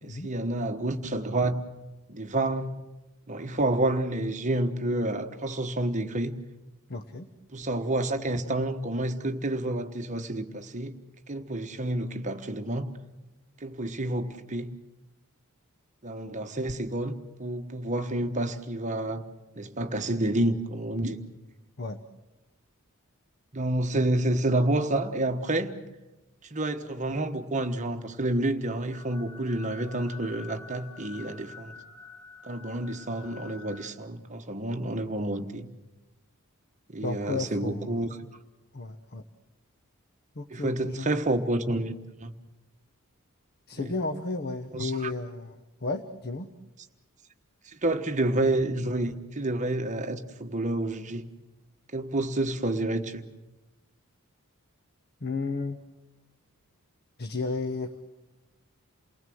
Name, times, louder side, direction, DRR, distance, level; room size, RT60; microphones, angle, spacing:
voice 1, 0.0-1.6 2.1-2.8 3.3-6.4 7.5-11.0 11.3-12.9 13.6-14.8 16.0-19.2 19.6-21.2 23.5-25.7 26.4-31.7 32.4-35.7 36.9-38.1 40.5-41.9 42.2-42.3 43.7-43.9 44.7-45.1 47.7-51.3 51.9-53.2, right 1 dB, 35° right, 7 dB, 1.2 m, -29 dB
voice 2, 6.9-7.3 21.8-22.0 23.9-24.0 37.0-38.2 38.7-39.2 40.4-41.2 43.7-46.5 55.2-55.8 57.2-58.0, left 3 dB, 45° left, 9 dB, 1.0 m, -33 dB
sound 1, 28.9-33.9, left 4 dB, 20° left, 2.3 m, -48 dB
28.5 x 19.0 x 7.8 m, 1.1 s
head